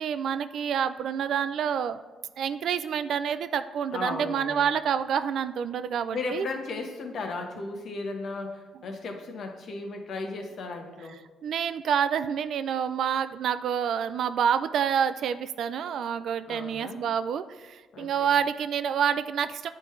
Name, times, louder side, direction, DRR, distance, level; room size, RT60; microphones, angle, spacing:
voice 1, 0.0-2.0 2.4-6.5 11.4-19.7, right 8 dB, 70° right, 11 dB, 0.3 m, -28 dB
voice 2, 3.9-4.7 6.1-11.2 16.5-17.0 17.9-18.3, left 3 dB, 60° left, 4 dB, 1.0 m, -35 dB
9.5 x 3.9 x 3.2 m, 1.3 s
cardioid pair, 90°, 0 cm